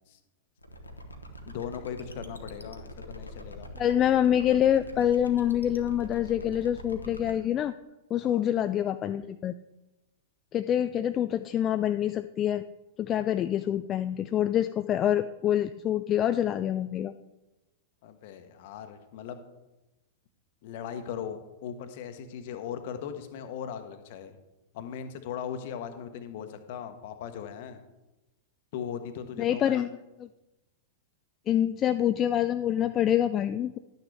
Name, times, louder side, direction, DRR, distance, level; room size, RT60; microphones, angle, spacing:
sound 1, 0.6-7.3, equal, 85° left, 1.0 m, -44 dB
voice 1, 1.5-3.7 8.2-8.4 18.0-19.4 20.6-24.4 24.7-27.8 28.7-29.8, left 8 dB, 50° left, 8 dB, 1.1 m, -38 dB
voice 2, 3.8-7.7 8.1-9.5 10.5-12.6 13.0-17.1 29.4-29.9 31.5-33.8, left 10 dB, 30° left, 10 dB, 0.3 m, -26 dB
11.5 x 9.3 x 3.4 m, 1.0 s
figure-of-eight pair, 95°, 0 cm